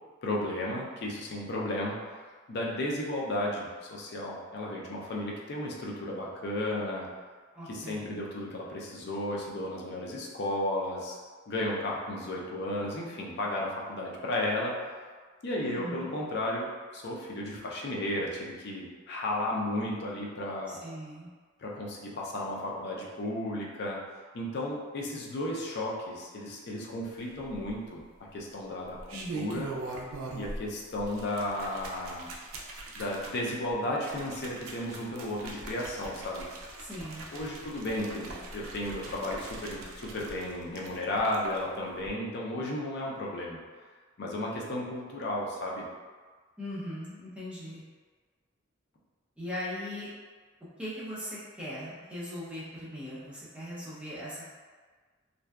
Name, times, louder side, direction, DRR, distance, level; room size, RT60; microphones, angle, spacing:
voice 1, 0.2-2.2 2.5-7.1 7.7-11.2 11.5-14.9 15.4-20.8 21.6-24.0 24.3-28.0 28.3-29.7 30.3-32.3 32.9-36.5 37.3-43.6 44.2-45.9, left 1 dB, 50° left, -3 dB, 0.4 m, -34 dB
voice 2, 7.5-8.2 15.6-16.1 20.7-21.3 29.1-29.6 36.8-37.3 46.6-47.8 49.4-50.1 50.8-54.5, equal, 5° right, -8 dB, 0.5 m, -39 dB
sound 1, 27.4-28.0 28.8-30.7 31.0-41.6 42.0-42.1, right 2 dB, 80° right, 0.4 m, -42 dB
2.5 x 2.2 x 2.2 m, 1.5 s
head